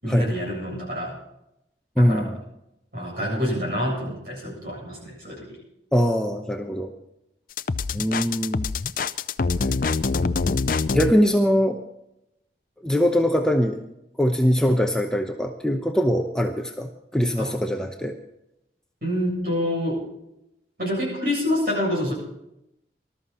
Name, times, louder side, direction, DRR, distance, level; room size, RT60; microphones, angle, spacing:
voice 1, 0.0-1.2 2.0-2.3 2.9-5.6 17.4-17.6 19.0-20.1 20.8-22.1, left 1 dB, 55° right, -2 dB, 7.7 m, -27 dB
voice 2, 2.0-2.4 5.9-6.9 7.9-8.7 9.6-9.8 10.9-11.8 12.8-13.8 14.2-18.2, equal, 5° left, 3 dB, 0.8 m, -22 dB
sound 1, 7.6-11.1, left 4 dB, 50° left, 0.5 m, -24 dB
20.0 x 13.0 x 4.3 m, 0.84 s
head